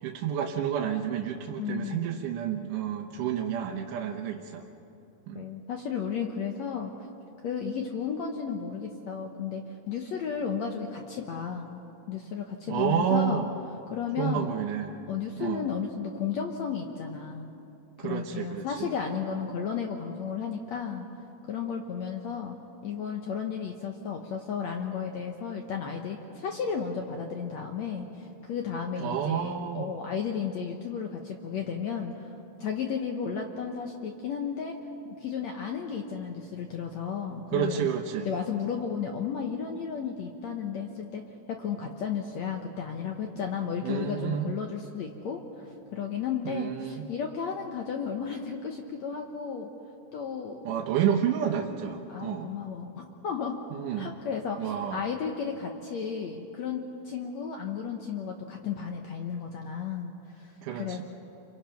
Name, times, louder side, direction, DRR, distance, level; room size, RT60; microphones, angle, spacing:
voice 1, 0.0-4.7 5.3-5.4 12.7-13.5 14.2-14.9 15.4-15.7 18.0-18.9 29.0-29.9 37.5-38.3 43.8-44.5 46.4-47.1 50.7-52.5 53.7-54.1 54.6-55.0 60.6-61.0, right 8 dB, 65° right, 1 dB, 2.3 m, -30 dB
voice 2, 1.6-2.1 5.3-6.9 7.4-11.8 12.1-13.4 13.9-14.5 15.1-17.5 18.0-21.0 21.5-22.6 22.8-32.3 32.6-34.8 35.0-37.9 38.2-41.2 41.5-49.7 50.1-50.6 52.1-53.6 53.9-61.0, left 6 dB, 70° left, 3 dB, 1.7 m, -33 dB
29.0 x 24.0 x 5.8 m, 2.8 s
omnidirectional pair, 4.5 m